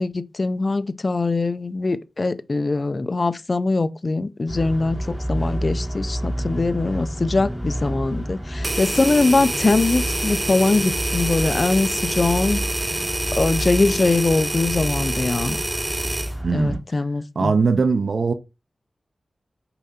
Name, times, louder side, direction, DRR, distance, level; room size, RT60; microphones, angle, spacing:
voice 1, 0.0-12.6 13.3-15.6 16.5-17.5, left 3 dB, 40° left, 0.6 m, -22 dB
sound 1, 4.5-16.8, right 1 dB, 10° right, 3.0 m, -29 dB
sound 2, 8.6-16.3, right 1 dB, 25° right, 0.7 m, -27 dB
voice 2, 16.4-16.8 17.4-18.3, right 4 dB, 70° right, 0.7 m, -20 dB
6.9 x 4.9 x 4.3 m
wide cardioid pair, 85°, 0 cm